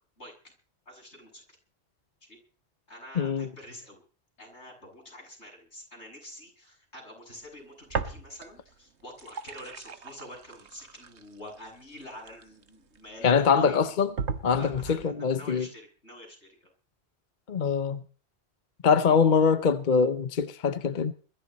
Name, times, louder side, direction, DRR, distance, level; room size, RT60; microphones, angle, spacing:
voice 1, 0.2-0.5 0.9-1.6 2.2-2.4 2.9-4.0 4.4-13.8 14.5-16.7, left 1 dB, 90° left, 7.7 m, -47 dB
voice 2, 3.2-3.5 13.2-14.1 14.4-15.7 17.5-18.0 18.8-21.1, left 6 dB, 50° left, 0.9 m, -23 dB
sound 1, 7.9-8.7 9.0-13.0 13.5-13.6 14.2-15.1, right 5 dB, 90° right, 1.6 m, -37 dB
22.0 x 14.0 x 4.1 m
omnidirectional pair, 1.1 m